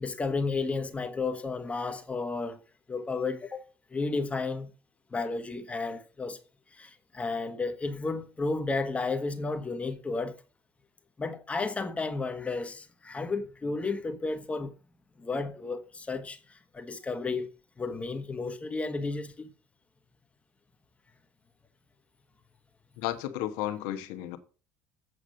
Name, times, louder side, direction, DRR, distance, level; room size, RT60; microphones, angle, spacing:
voice 1, 0.0-2.6 2.9-3.6 3.9-4.7 5.1-6.4 6.7-10.4 11.2-14.7 15.2-17.5 17.8-19.5, left 3 dB, 20° left, 1.3 m, -32 dB
voice 2, 23.0-24.4, left 13 dB, 80° left, 1.3 m, -33 dB
8.3 x 4.9 x 6.6 m
supercardioid pair, 90°, 6 cm